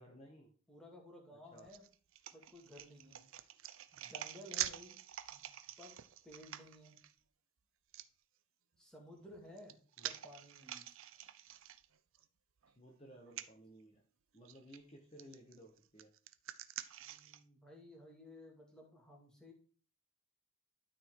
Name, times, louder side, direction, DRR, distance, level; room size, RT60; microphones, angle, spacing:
voice 1, 0.0-0.5 1.3-1.7 10.0-10.1 12.8-14.0 14.3-16.1, equal, 30° left, 1 dB, 1.1 m, -57 dB
voice 2, 0.7-1.8 2.3-3.2 3.9-5.0 5.3-6.0 6.2-7.0 8.8-9.8 10.0-10.9 17.0-19.5, left 1 dB, 5° left, -1 dB, 2.2 m, -56 dB
sound 1, 1.6-7.1 7.9-8.1 9.2-12.2 12.6-12.7 13.3-13.5 14.4-14.8 15.2-17.4, right 12 dB, 60° right, 0.5 m, -46 dB
12.5 x 4.3 x 4.7 m, 0.42 s
head